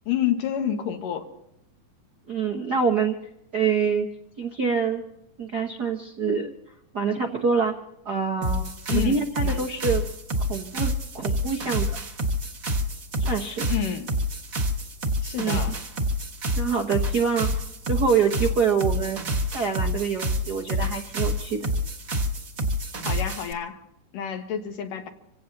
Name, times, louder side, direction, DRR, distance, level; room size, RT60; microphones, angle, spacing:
voice 1, 0.1-1.3 8.9-9.6 13.7-14.1 15.2-15.8 23.0-23.8 24.1-25.1, left 9 dB, 90° left, 5 dB, 3.2 m, -29 dB
voice 2, 2.3-3.2 3.5-4.1 4.4-5.0 5.4-6.5 6.9-7.7 8.0-10.0 10.4-11.9 13.2-13.7 15.4-15.7 16.6-17.5 17.9-19.2 19.5-21.7, right 5 dB, 65° right, 2 dB, 1.0 m, -25 dB
sound 1, 8.4-23.5, equal, 40° right, 1.3 m, -28 dB
26.5 x 17.0 x 2.8 m, 0.81 s
omnidirectional pair, 3.7 m